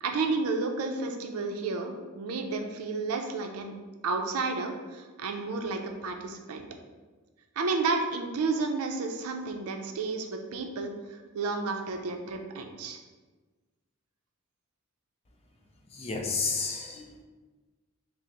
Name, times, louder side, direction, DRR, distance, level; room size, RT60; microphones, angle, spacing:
voice 1, 0.0-3.7 4.0-6.6 7.6-13.0, right 3 dB, 90° right, 4 dB, 0.5 m, -31 dB
voice 2, 15.9-17.2, left 4 dB, 25° left, 1 dB, 0.4 m, -31 dB
6.0 x 2.0 x 2.9 m, 1.3 s
head